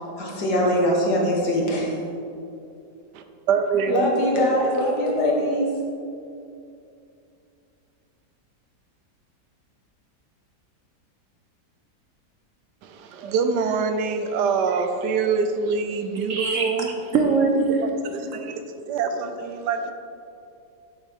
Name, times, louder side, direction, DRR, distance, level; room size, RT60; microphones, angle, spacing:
voice 1, 0.2-2.0 3.9-5.8, equal, 70° left, -2 dB, 2.0 m, -22 dB
voice 2, 3.5-4.1 12.8-16.9 17.8-19.9, right 5 dB, 80° right, 7 dB, 1.2 m, -25 dB
voice 3, 16.3-16.7 17.1-17.9, right 4 dB, 55° right, 2 dB, 1.0 m, -21 dB
8.4 x 8.0 x 3.6 m, 2.6 s
omnidirectional pair, 1.8 m